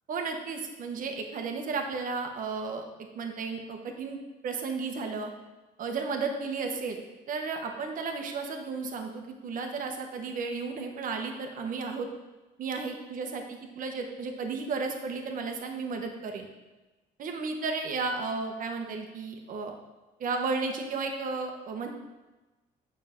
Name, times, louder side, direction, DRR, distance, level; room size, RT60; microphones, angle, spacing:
voice 1, 0.1-5.3 5.8-7.0 7.3-12.1 12.6-16.5 17.2-19.7 20.2-21.9, right 4 dB, 55° right, 3 dB, 1.2 m, -33 dB
9.0 x 6.5 x 3.7 m, 1.1 s
cardioid pair, 110°, 17 cm